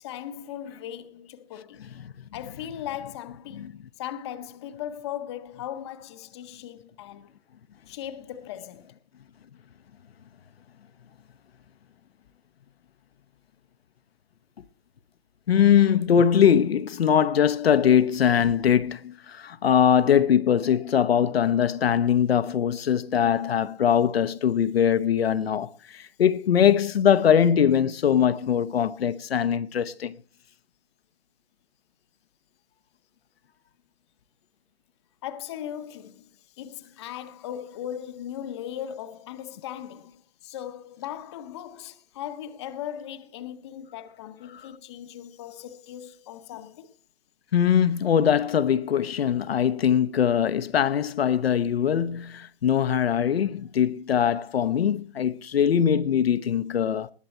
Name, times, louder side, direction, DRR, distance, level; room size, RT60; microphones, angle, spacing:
voice 1, 0.0-1.9 2.3-7.3 7.9-8.9 35.2-46.9, left 10 dB, 25° left, 0.8 m, -38 dB
voice 2, 15.5-30.1 47.5-57.1, left 8 dB, 70° left, 0.9 m, -22 dB
19.5 x 7.5 x 4.3 m
hypercardioid pair, 155°, 31 cm